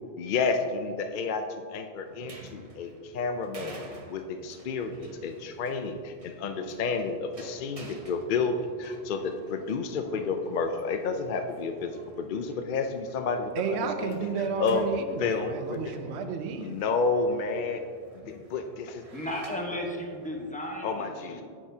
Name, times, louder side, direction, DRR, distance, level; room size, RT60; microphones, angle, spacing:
voice 1, 0.2-1.4 1.7-3.8 4.1-11.9 12.2-14.3 14.6-14.8 15.2-15.8 16.6-17.8 18.1-19.0 20.8-21.4, left 4 dB, 55° left, 6 dB, 0.6 m, -30 dB
sound 1, 2.1-20.8, right 2 dB, 35° right, 0.8 m, -52 dB
voice 2, 13.6-16.7, right 6 dB, 75° right, 7 dB, 0.9 m, -32 dB
voice 3, 19.1-21.4, left 1 dB, 10° left, 0 dB, 0.9 m, -35 dB
9.9 x 8.5 x 2.7 m, 2.2 s
omnidirectional pair, 1.1 m